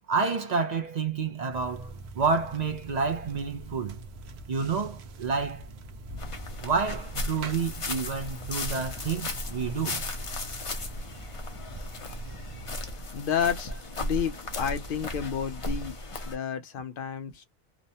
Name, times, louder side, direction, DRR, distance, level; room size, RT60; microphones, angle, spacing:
voice 1, 0.1-4.0 4.5-5.7 6.6-10.0, right 5 dB, 50° right, 0.6 m, -29 dB
sound 1, 1.5-12.9, right 2 dB, 90° right, 0.9 m, -44 dB
sound 2, 6.2-16.3, left 2 dB, 40° left, 0.6 m, -36 dB
voice 2, 13.1-13.7 14.0-16.0 16.2-17.4, left 7 dB, 65° left, 0.8 m, -30 dB
3.0 x 2.1 x 2.7 m
omnidirectional pair, 1.0 m